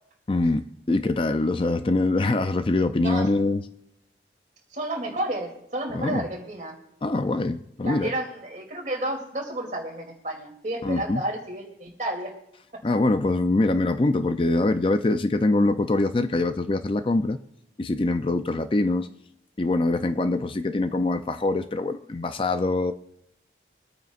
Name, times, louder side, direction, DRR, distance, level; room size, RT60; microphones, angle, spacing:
voice 1, 0.3-3.6 5.9-6.3 7.0-8.1 10.8-11.2 12.8-17.4 17.8-19.1 19.6-22.9, left 2 dB, 30° left, 10 dB, 0.4 m, -24 dB
voice 2, 4.7-6.8 7.8-12.3 12.7-12.8, right 1 dB, 45° right, 1 dB, 2.8 m, -31 dB
24.0 x 9.3 x 2.4 m, 0.82 s
head